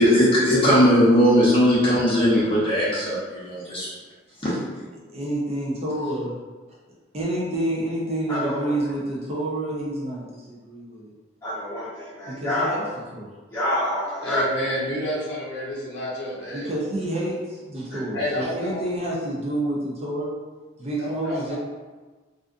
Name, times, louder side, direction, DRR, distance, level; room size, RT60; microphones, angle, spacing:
voice 1, 0.0-3.9 4.4-4.5, equal, 25° left, -9 dB, 0.8 m, -18 dB
voice 2, 5.1-6.3 7.1-11.1 12.3-12.8 13.1-13.3 16.5-20.3 20.8-21.6, right 1 dB, 30° right, -5 dB, 0.4 m, -28 dB
voice 3, 8.3-8.7 11.4-12.8 13.5-14.4 17.9-18.0, left 1 dB, 10° left, -12 dB, 1.1 m, -27 dB
voice 4, 14.2-16.7 18.1-18.8 21.0-21.6, left 1 dB, 55° left, -6 dB, 0.6 m, -29 dB
2.4 x 2.4 x 2.4 m, 1.3 s
head